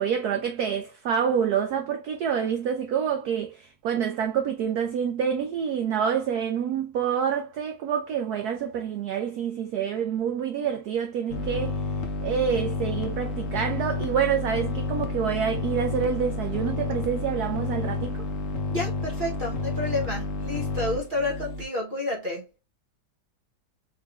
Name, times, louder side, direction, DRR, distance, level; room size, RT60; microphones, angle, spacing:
voice 1, 0.0-11.8 12.2-18.2, right 8 dB, 75° right, 0.9 m, -27 dB
sound 1, 11.3-21.6, left 3 dB, 60° left, 0.8 m, -30 dB
voice 2, 18.7-22.5, left 2 dB, 30° right, 1.1 m, -30 dB
4.8 x 3.7 x 2.3 m
omnidirectional pair, 2.3 m